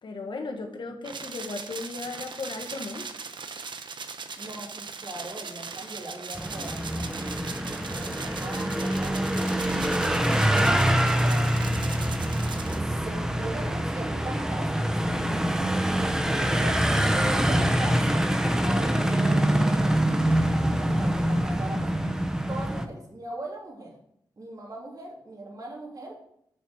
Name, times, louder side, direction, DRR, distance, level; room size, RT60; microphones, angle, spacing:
voice 1, 0.0-3.1, left 3 dB, 75° left, 5 dB, 1.4 m, -36 dB
sound 1, 1.0-12.8, right 5 dB, 70° right, 0.8 m, -39 dB
voice 2, 4.4-7.4 7.9-11.8 12.6-15.5 16.3-18.2 18.6-21.9 22.5-23.9 24.4-26.1, right 1 dB, 50° right, -3 dB, 3.0 m, -39 dB
sound 2, 6.3-22.9, right 1 dB, 5° right, 0.8 m, -25 dB
7.1 x 6.1 x 7.2 m, 0.72 s
wide cardioid pair, 100°, 8 cm